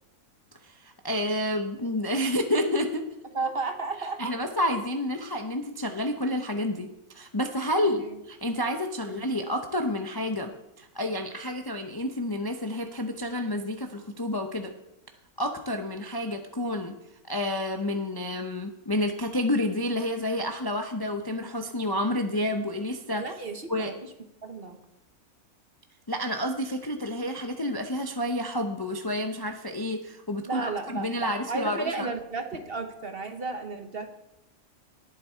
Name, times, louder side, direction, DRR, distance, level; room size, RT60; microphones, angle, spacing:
voice 1, 0.6-3.0 4.0-6.9 7.1-10.5 10.8-14.7 15.4-16.9 17.3-23.4 23.7-24.0 26.1-32.1, left 1 dB, 20° left, 4 dB, 0.6 m, -29 dB
voice 2, 3.3-4.3 9.0-9.2 23.2-23.9 24.4-24.8 30.4-34.1, right 3 dB, 40° right, 6 dB, 1.3 m, -33 dB
19.0 x 7.5 x 4.6 m, 0.88 s
omnidirectional pair, 1.6 m